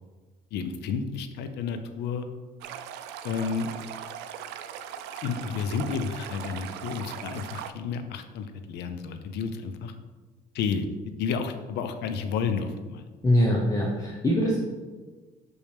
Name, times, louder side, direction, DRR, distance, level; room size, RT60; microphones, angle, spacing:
voice 1, 0.5-2.3 3.2-3.7 5.2-9.9 10.5-10.9 11.2-13.0, left 6 dB, 80° left, 8 dB, 0.6 m, -31 dB
Stream, 2.6-7.7, right 9 dB, 85° right, 0.4 m, -39 dB
voice 2, 13.2-14.6, equal, 20° left, -3 dB, 1.0 m, -23 dB
6.2 x 5.3 x 3.5 m, 1.3 s
cardioid pair, 110°, 17 cm